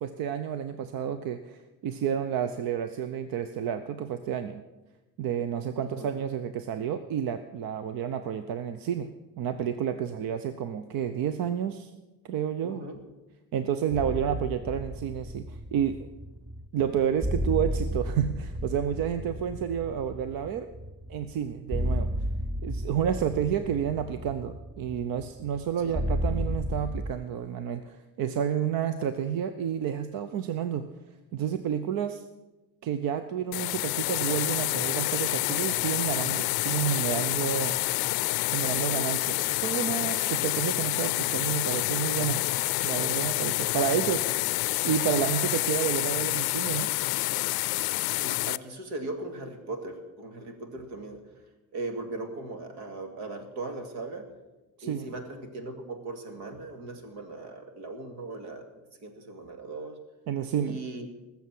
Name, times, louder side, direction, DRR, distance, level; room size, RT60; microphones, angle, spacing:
voice 1, 0.0-4.6 5.2-9.1 9.4-11.9 12.2-12.9 13.5-16.1 16.7-20.7 21.1-22.1 22.6-30.8 31.3-32.2 32.8-37.8 38.5-42.4 42.8-44.3 44.6-46.9 54.8-55.1 60.3-60.8, right 8 dB, 65° right, 10 dB, 0.8 m, -30 dB
voice 2, 5.8-6.1 12.6-13.0 25.8-26.0 48.1-54.3 54.8-58.7 59.0-60.0 60.6-61.1, right 2 dB, 85° right, 5 dB, 2.5 m, -39 dB
sound 1, 13.9-27.1, equal, 5° right, 0.4 m, -33 dB
sound 2, 33.5-48.6, left 20 dB, 75° left, 0.5 m, -28 dB
19.5 x 7.2 x 7.7 m, 1.1 s
cardioid pair, 125°, 38 cm